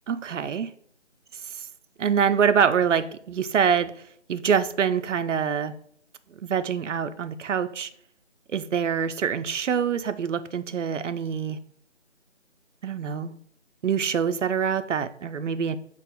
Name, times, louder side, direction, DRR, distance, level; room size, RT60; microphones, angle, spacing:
voice 1, 0.1-0.7 1.5-1.6 2.0-3.9 4.3-5.7 6.4-7.9 8.5-11.6 12.8-13.3 13.8-15.8, right 7 dB, 85° right, 11 dB, 0.5 m, -25 dB
6.0 x 2.4 x 3.5 m, 0.62 s
figure-of-eight pair, 165°, 36 cm